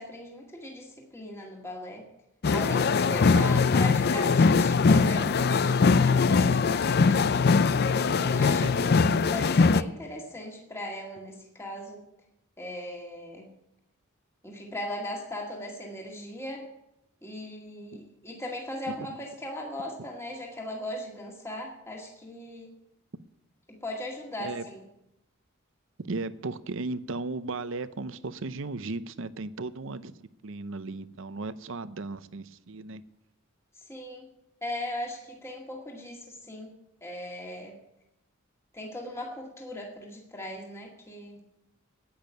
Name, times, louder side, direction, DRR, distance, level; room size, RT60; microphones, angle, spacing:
voice 1, 0.0-2.0 2.5-7.3 8.0-8.9 9.3-12.0 12.6-13.5 14.4-16.7 17.2-22.7 23.7-24.9 33.9-34.3 34.6-36.7 37.0-37.8 38.7-41.4, left 1 dB, 15° left, -1 dB, 1.9 m, -38 dB
sound 1, 2.4-9.8, left 4 dB, 50° left, 0.4 m, -22 dB
voice 2, 8.4-9.0 18.9-19.0 24.4-24.6 26.1-33.0, right 3 dB, 65° right, 14 dB, 0.7 m, -36 dB
10.5 x 8.8 x 9.2 m, 0.84 s
head